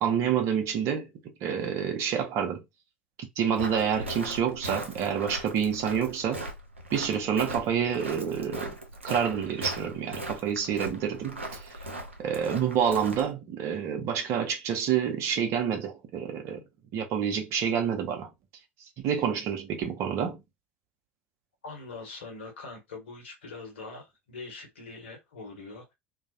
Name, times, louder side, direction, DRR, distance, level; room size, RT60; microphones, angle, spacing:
voice 1, 0.0-1.1 1.4-2.6 3.2-6.5 6.9-8.7 9.0-11.7 12.2-16.6 16.9-18.3 19.0-20.4, right 8 dB, 45° right, 0.6 m, -28 dB
Walk footsteps, 3.6-13.3, right 1 dB, 85° right, 0.5 m, -39 dB
voice 2, 21.6-25.9, left 3 dB, 70° left, 0.9 m, -43 dB
2.3 x 2.0 x 2.6 m
figure-of-eight pair, 70°, 6 cm